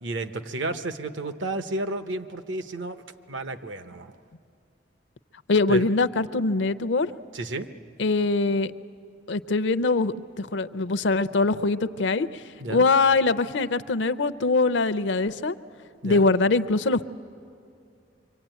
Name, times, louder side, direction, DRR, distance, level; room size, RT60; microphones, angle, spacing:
voice 1, 0.0-3.0 3.3-4.1 5.7-5.9 7.3-7.7 12.6-12.9 16.0-16.3, right 2 dB, 75° right, 9 dB, 1.0 m, -32 dB
voice 2, 5.5-7.1 8.0-8.7 9.3-12.4 12.7-15.6 16.0-17.0, left 3 dB, 65° left, 15 dB, 0.6 m, -23 dB
25.0 x 24.5 x 9.1 m, 2.5 s
head